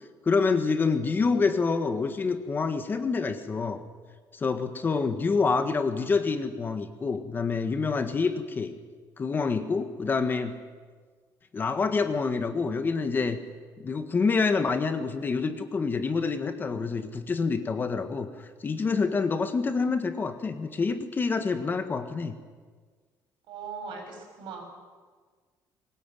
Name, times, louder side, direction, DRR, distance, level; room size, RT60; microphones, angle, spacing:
voice 1, 0.2-3.8 4.3-8.7 9.2-10.5 11.5-13.4 13.8-22.3, left 4 dB, 25° left, 8 dB, 1.6 m, -27 dB
voice 2, 23.5-24.6, right 5 dB, 90° right, 3 dB, 6.6 m, -39 dB
21.0 x 19.5 x 9.2 m, 1.5 s
cardioid pair, 155°, 8 cm